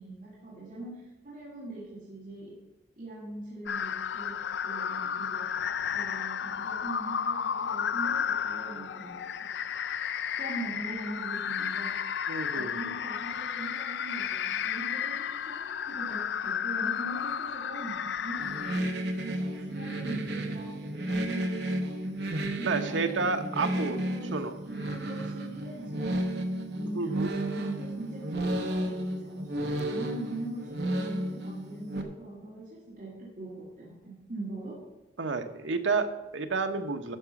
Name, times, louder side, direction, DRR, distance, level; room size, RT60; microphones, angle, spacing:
voice 1, 0.0-2.5 3.0-4.4 4.6-5.5 5.9-9.2 10.4-12.0 12.5-18.5 19.1-21.8 22.6-26.2 26.7-34.8, right 2 dB, 40° right, -10 dB, 3.1 m, -41 dB
sound 1, 3.7-18.8, left 8 dB, 65° left, 0.3 m, -32 dB
voice 2, 12.3-12.9 22.6-24.0 24.3-24.6 26.8-27.3 35.2-37.2, right 4 dB, 80° right, 6 dB, 0.9 m, -30 dB
sound 2, 18.4-32.0, right 1 dB, 60° right, 1.1 m, -33 dB
12.0 x 5.0 x 5.9 m, 1.0 s
head